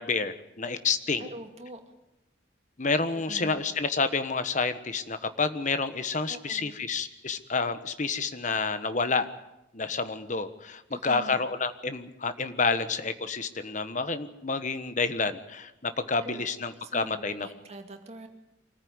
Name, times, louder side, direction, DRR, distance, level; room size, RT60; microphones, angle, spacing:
voice 1, 0.0-1.2 2.8-9.2 9.7-17.5, left 4 dB, 40° left, 11 dB, 1.3 m, -29 dB
voice 2, 1.2-1.8 3.3-3.6 6.3-6.8 10.9-11.4 16.2-18.3, right 1 dB, 35° right, 5 dB, 2.4 m, -44 dB
25.0 x 14.5 x 9.6 m, 0.91 s
head